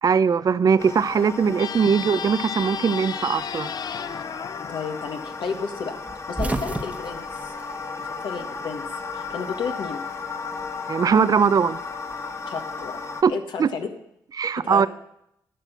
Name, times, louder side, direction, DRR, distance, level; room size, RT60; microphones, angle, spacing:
voice 1, 0.0-3.7 10.9-11.8 13.2-13.3 13.6-13.7 14.4-14.9, right 6 dB, 50° right, 0.5 m, -20 dB
sound 1, 0.8-13.2, left 4 dB, 35° left, 1.2 m, -35 dB
sound 2, 1.5-6.0, left 8 dB, 55° left, 0.4 m, -34 dB
voice 2, 4.7-6.0 6.3-7.5 8.0-8.8 9.1-10.0 12.5-13.0 13.3-13.9 14.6-14.9, left 5 dB, 70° left, 1.6 m, -32 dB
sound 3, 6.0-8.6 8.9-9.9 11.1-12.6, right 2 dB, 15° right, 1.2 m, -33 dB
12.0 x 5.9 x 8.1 m
cardioid pair, 65°, 8 cm